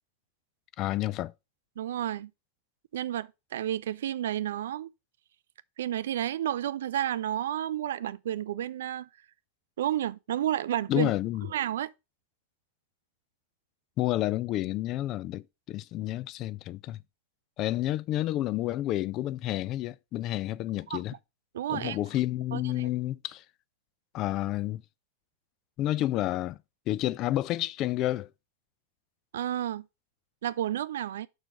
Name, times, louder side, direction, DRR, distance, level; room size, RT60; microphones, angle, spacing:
voice 1, 0.8-1.3 10.9-11.5 14.0-17.0 17.6-21.1 21.7-23.4 24.1-24.8 25.8-26.6 26.9-28.3, left 14 dB, 35° left, 0.4 m, -30 dB
voice 2, 1.8-2.3 2.9-4.9 5.8-9.1 9.8-11.1 11.5-11.9 20.9-21.0 21.5-22.0 22.5-22.9 29.3-29.8 30.4-31.3, right 11 dB, 60° right, 0.3 m, -31 dB
6.3 x 4.6 x 4.8 m
figure-of-eight pair, 90°, 0 cm